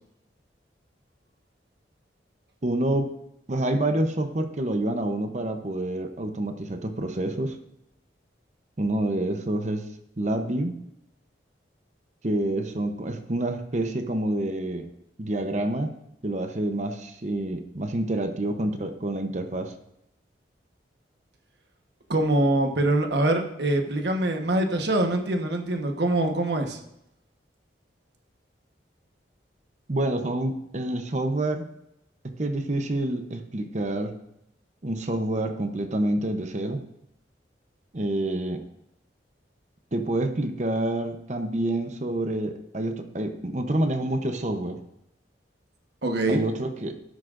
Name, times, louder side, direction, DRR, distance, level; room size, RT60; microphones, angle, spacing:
voice 1, 2.6-3.1 3.5-7.6 8.8-9.8 10.2-10.8 12.2-14.9 15.2-15.9 16.2-19.7 29.9-31.6 32.2-34.1 34.8-36.8 37.9-38.6 39.9-44.8 46.3-47.0, right 1 dB, 40° right, 7 dB, 0.8 m, -27 dB
voice 2, 22.1-26.8 46.0-46.4, right 1 dB, 65° right, 4 dB, 1.2 m, -24 dB
12.5 x 9.9 x 2.6 m, 0.81 s
head